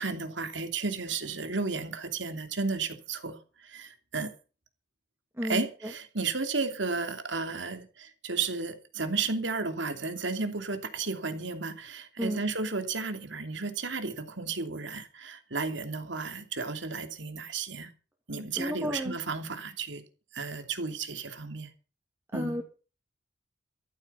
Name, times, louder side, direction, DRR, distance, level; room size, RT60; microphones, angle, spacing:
voice 1, 0.0-4.3 5.4-17.9 18.3-20.0 20.3-21.7 22.3-22.6, right 4 dB, 75° right, 2.9 m, -33 dB
voice 2, 18.6-19.2 22.3-22.7, equal, 15° right, 2.4 m, -32 dB
14.0 x 13.0 x 5.7 m
head